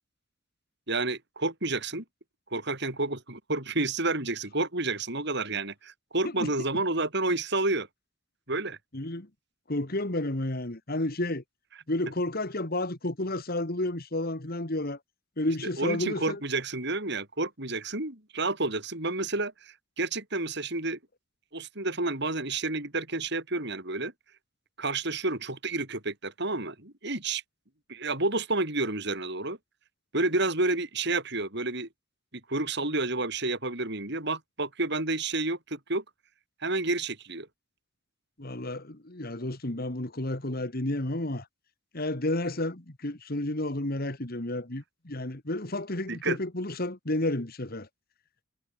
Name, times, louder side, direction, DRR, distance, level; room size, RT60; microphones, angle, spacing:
voice 1, 0.9-2.0 2.5-7.9 8.5-8.8 15.8-21.0 21.5-24.1 24.8-27.4 27.9-29.6 30.1-31.9 32.5-36.0 36.6-37.5 46.1-46.4, right 2 dB, 55° right, 6.7 m, -30 dB
voice 2, 8.9-9.3 9.7-11.4 11.9-15.0 15.4-16.4 38.4-41.5 41.9-47.9, left 1 dB, 45° left, 2.1 m, -31 dB
head